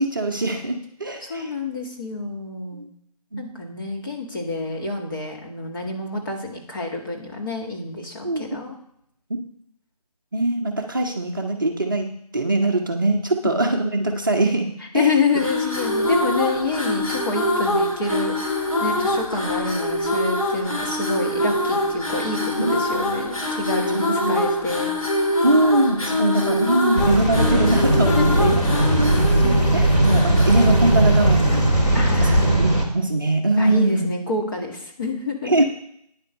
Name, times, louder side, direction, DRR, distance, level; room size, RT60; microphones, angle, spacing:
voice 1, 0.0-1.5 2.8-2.9 3.3-3.4 8.2-8.5 10.3-14.7 14.9-15.1 22.6-22.7 23.9-24.4 25.4-28.6 29.0-29.1 29.4-34.1 35.4-35.6, right 2 dB, 30° right, 2 dB, 0.8 m, -22 dB
voice 2, 1.3-2.9 3.4-8.8 14.9-18.5 18.8-24.9 28.2-28.7 31.9-32.5 33.6-35.5, left 3 dB, 30° left, -2 dB, 2.0 m, -27 dB
sound 1, 15.3-31.7, left 1 dB, 55° left, 2.9 m, -25 dB
sound 2, 27.0-32.8, right 1 dB, 10° left, 1.1 m, -18 dB
9.7 x 7.8 x 5.3 m, 0.70 s
figure-of-eight pair, 165°, 21 cm